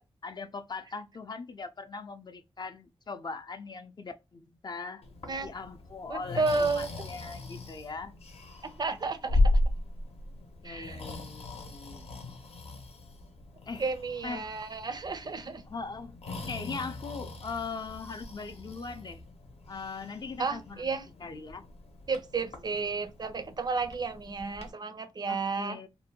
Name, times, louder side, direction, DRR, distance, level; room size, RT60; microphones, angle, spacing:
voice 1, 0.2-5.1 5.4-8.2 10.6-12.1 13.7-13.9 14.2-14.5 15.7-16.2 16.5-19.2 19.7-21.7 25.3-25.9, left 4 dB, 40° left, 0.4 m, -40 dB
Breathing, 5.0-24.7, left 2 dB, 70° left, 0.7 m, -36 dB
voice 2, 6.1-7.1 8.6-9.6 10.6-11.0 13.8-15.6 20.4-21.1 22.1-25.8, right 4 dB, 40° right, 0.4 m, -32 dB
2.6 x 2.1 x 2.7 m
cardioid pair, 80°, 11 cm